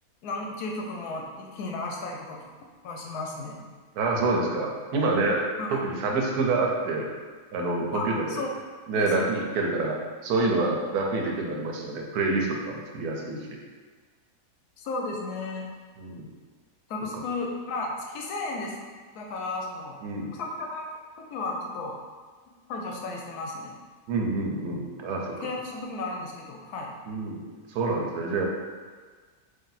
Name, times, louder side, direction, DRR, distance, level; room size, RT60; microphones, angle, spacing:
voice 1, 0.2-2.4 2.8-3.7 5.6-5.8 7.9-8.5 8.9-9.2 14.8-15.7 16.9-18.7 19.2-20.0 20.3-20.9 21.2-22.0 22.7-23.7 25.4-26.9, left 3 dB, 85° left, 0 dB, 1.2 m, -34 dB
voice 2, 3.9-7.1 7.5-8.4 8.9-10.0 10.2-13.6 16.0-16.3 20.0-20.3 24.1-25.5 27.1-27.4 27.7-28.4, right 3 dB, 85° right, 0 dB, 1.2 m, -27 dB
3.3 x 2.7 x 4.0 m, 1.5 s
omnidirectional pair, 1.6 m